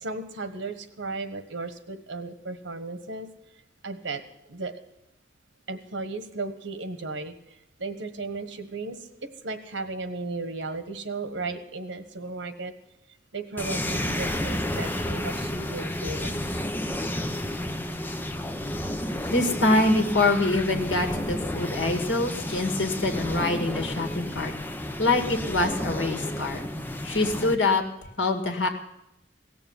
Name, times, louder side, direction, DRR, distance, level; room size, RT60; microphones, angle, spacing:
voice 1, 0.0-3.3 3.8-4.2 4.5-4.7 5.7-7.3 7.8-9.0 9.4-12.7 13.3-16.3, right 3 dB, 85° right, 10 dB, 1.4 m, -35 dB
sound 1, 13.6-27.6, left 1 dB, 10° left, 0.6 m, -31 dB
voice 2, 19.3-24.5 25.0-26.7 27.0-27.8 28.2-28.7, left 2 dB, 80° left, 3 dB, 2.0 m, -25 dB
17.5 x 7.0 x 9.6 m, 0.85 s
head